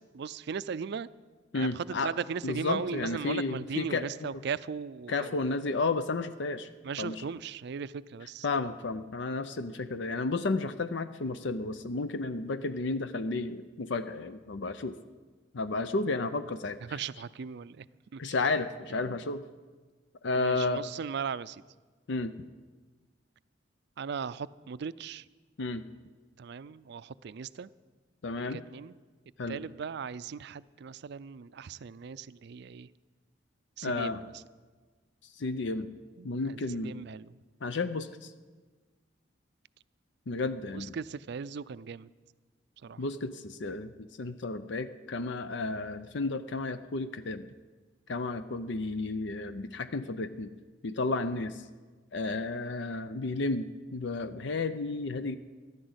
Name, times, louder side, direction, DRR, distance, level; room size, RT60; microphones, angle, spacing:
voice 1, 0.1-1.1 1.5-5.3 6.8-8.5 16.8-17.9 18.1-18.3 19.0-19.2 20.3-21.6 24.0-25.3 26.4-27.7 28.5-28.9 29.5-32.9 33.8-34.3 36.2-37.3 40.7-42.1 42.8-43.0, right 6 dB, 65° right, 17 dB, 0.4 m, -38 dB
voice 2, 1.5-2.1 2.4-4.4 5.1-6.7 7.0-7.2 8.4-14.9 15.5-17.0 18.2-19.4 20.2-20.8 22.1-22.3 25.6-25.8 28.2-28.6 29.4-29.6 33.8-34.2 35.4-35.9 36.2-36.9 37.6-38.3 40.3-40.9 43.0-47.5 48.1-50.5 50.8-51.6 52.1-55.4, left 3 dB, 70° left, 11 dB, 0.6 m, -32 dB
14.0 x 11.5 x 8.0 m, 1.4 s
head